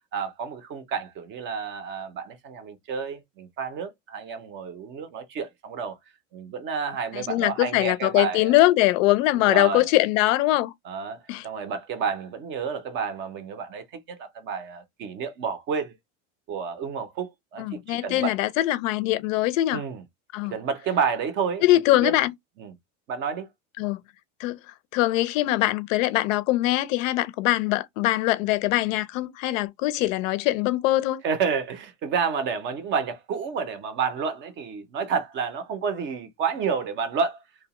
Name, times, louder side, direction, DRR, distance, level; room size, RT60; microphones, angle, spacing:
voice 1, 0.1-6.0 6.3-8.5 9.4-9.9 10.8-15.9 16.5-18.3 19.7-20.0 20.5-22.2 22.6-22.7 23.1-23.5 31.2-37.4, right 6 dB, 30° right, 0.4 m, -30 dB
voice 2, 7.1-10.7 11.3-11.4 17.6-19.8 20.3-20.6 21.6-22.3 23.8-24.0 24.4-24.6 24.9-31.2, left 16 dB, 85° left, 0.5 m, -22 dB
2.8 x 2.1 x 2.8 m
supercardioid pair, 150°, 38 cm